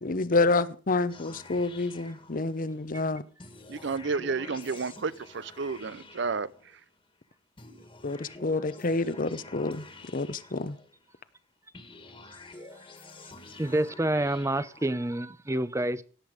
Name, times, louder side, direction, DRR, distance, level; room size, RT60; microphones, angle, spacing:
voice 1, 0.0-3.2 8.0-9.8 10.1-10.8, left 3 dB, 45° left, 0.8 m, -28 dB
sound 1, 1.1-2.9 3.4-7.0 7.6-11.2 11.7-15.3, left 3 dB, 30° left, 1.8 m, -49 dB
voice 2, 3.7-6.5, right 4 dB, 65° right, 0.6 m, -31 dB
voice 3, 13.6-16.0, right 1 dB, 15° right, 0.6 m, -28 dB
17.0 x 7.9 x 5.0 m
head